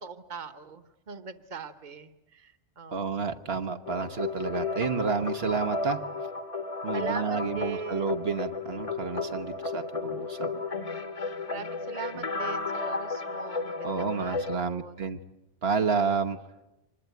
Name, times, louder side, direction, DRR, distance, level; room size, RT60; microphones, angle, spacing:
voice 1, 0.0-3.2 6.9-8.3 11.5-15.1, right 5 dB, 50° right, 10 dB, 1.3 m, -41 dB
voice 2, 2.9-6.0 6.8-10.6 13.8-15.2 15.6-16.4, right 5 dB, 75° right, 6 dB, 1.3 m, -30 dB
sound 1, 3.9-14.6, left 4 dB, 35° left, 1.2 m, -33 dB
25.5 x 21.0 x 9.3 m, 0.97 s
omnidirectional pair, 1.1 m